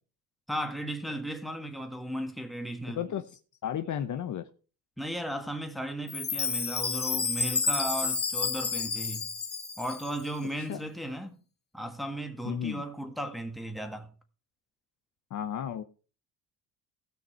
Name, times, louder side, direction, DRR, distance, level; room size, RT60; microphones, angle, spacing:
voice 1, 0.5-3.0 5.0-9.3 9.8-11.4 11.7-14.1, right 1 dB, ahead, 1.6 m, -35 dB
voice 2, 2.9-3.3 3.6-4.5 10.7-10.8 12.4-12.8 15.3-15.8, left 9 dB, 45° left, 0.8 m, -33 dB
Chime, 6.1-10.3, left 4 dB, 25° left, 1.4 m, -30 dB
16.0 x 6.1 x 4.4 m
cardioid pair, 105°, 41 cm